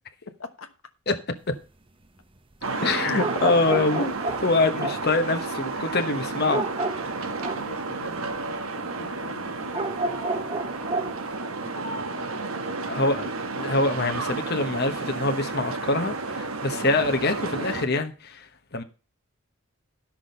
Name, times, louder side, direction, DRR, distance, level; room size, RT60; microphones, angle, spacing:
voice 1, 0.2-0.7 2.7-3.3 4.6-5.1 7.3-10.6 11.6-13.3, left 3 dB, 70° left, 1.1 m, -43 dB
sound 1, 2.6-17.9, right 3 dB, 85° right, 1.3 m, -32 dB
voice 2, 2.8-4.1 4.4-6.7 12.9-18.8, left 2 dB, 50° left, 1.1 m, -25 dB
sound 2, 3.2-4.5 4.8-5.1 6.5-7.7 9.7-11.3, right 2 dB, 25° right, 0.8 m, -30 dB
12.0 x 6.2 x 5.4 m
head